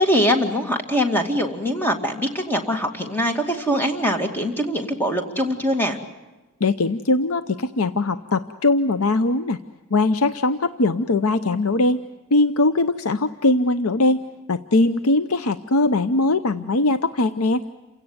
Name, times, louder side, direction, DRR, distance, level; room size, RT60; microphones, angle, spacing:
voice 1, 0.0-6.0, equal, 10° left, 4 dB, 2.3 m, -22 dB
voice 2, 6.6-9.6 9.9-12.0 12.3-14.2 14.5-17.6, left 2 dB, 75° left, 11 dB, 0.7 m, -20 dB
28.5 x 17.0 x 9.4 m, 1.1 s
head